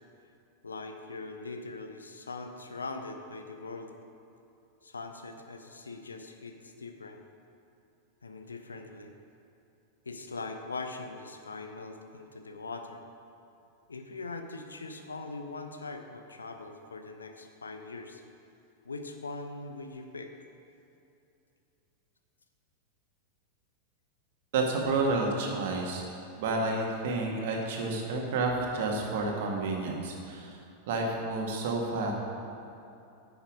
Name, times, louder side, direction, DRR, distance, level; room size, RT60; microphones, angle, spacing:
voice 1, 0.6-3.9 4.8-7.2 8.2-9.1 10.0-13.0 13.9-18.2 18.8-20.3, left 3 dB, 75° left, 6 dB, 0.7 m, -41 dB
voice 2, 24.5-26.0 26.4-30.6 30.9-32.1, right 3 dB, 55° right, 0 dB, 1.7 m, -30 dB
10.0 x 7.3 x 5.1 m, 2.7 s
figure-of-eight pair, 90°, 0 cm